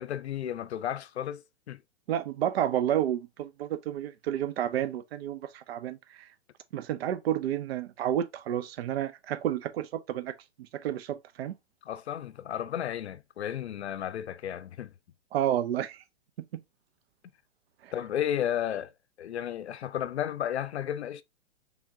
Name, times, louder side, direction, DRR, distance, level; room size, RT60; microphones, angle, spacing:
voice 1, 0.0-1.8 11.8-14.9 17.9-18.9 19.2-21.2, left 10 dB, 85° left, 0.5 m, -33 dB
voice 2, 2.1-6.3 6.7-10.3 10.7-11.6 15.3-16.0 16.5-16.6 17.8-17.9, right 11 dB, 65° right, 0.5 m, -30 dB
3.6 x 3.5 x 2.6 m
hypercardioid pair, 120°, 32 cm